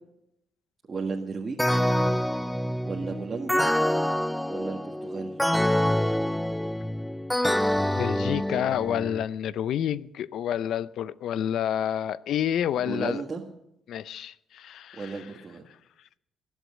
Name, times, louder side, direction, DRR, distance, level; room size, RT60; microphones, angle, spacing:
voice 1, 0.9-1.7 2.8-3.6 4.5-5.4 12.8-13.4 14.9-15.6, right 4 dB, 35° right, 1.8 m, -34 dB
sound 1, 1.6-9.2, equal, 5° left, 0.5 m, -26 dB
voice 2, 8.0-13.2 13.9-15.1, left 10 dB, 75° left, 0.5 m, -29 dB
21.5 x 8.2 x 6.5 m
cardioid pair, 90°, 0 cm